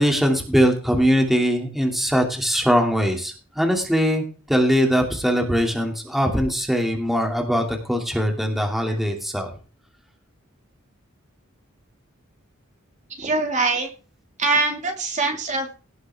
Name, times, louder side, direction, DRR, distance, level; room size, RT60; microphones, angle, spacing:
voice 1, 0.0-9.5, equal, ahead, 2 dB, 2.6 m, -21 dB
voice 2, 13.2-13.9 14.4-15.8, right 3 dB, 35° right, 3 dB, 2.4 m, -23 dB
18.5 x 8.0 x 3.6 m, 0.36 s
head